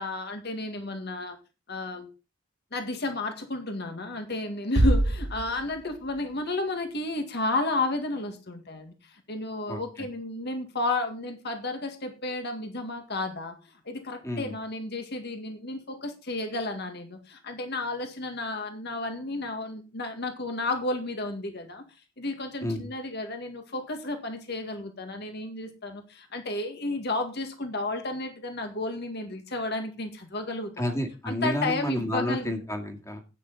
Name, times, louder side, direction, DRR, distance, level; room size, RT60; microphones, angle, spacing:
voice 1, 0.0-1.4 1.7-2.1 2.7-13.6 13.9-21.8 22.2-30.8 31.2-32.5, left 2 dB, 55° left, 5 dB, 2.0 m, -32 dB
sound 1, 4.8-6.7, right 1 dB, 70° right, 1.2 m, -26 dB
voice 2, 14.2-14.5 22.6-22.8 30.8-33.2, left 1 dB, 15° left, 4 dB, 2.1 m, -30 dB
11.5 x 9.0 x 4.1 m, 0.30 s
head